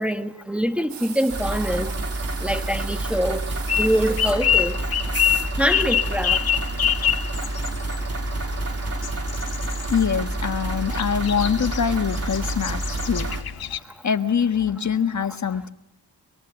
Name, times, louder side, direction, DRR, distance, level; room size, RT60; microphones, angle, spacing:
voice 1, 0.0-1.9 2.4-3.4 3.8-4.8 5.6-6.4, equal, 5° right, 1.5 m, -24 dB
sound 1, 0.9-4.9, right 8 dB, 85° right, 2.1 m, -40 dB
sound 2, 1.3-13.4, right 2 dB, 35° right, 3.2 m, -28 dB
sound 3, 3.7-13.8, left 9 dB, 60° left, 2.0 m, -27 dB
voice 2, 9.9-13.3 14.0-15.7, left 7 dB, 45° left, 1.5 m, -24 dB
25.5 x 22.5 x 8.2 m
cardioid pair, 90°, 41 cm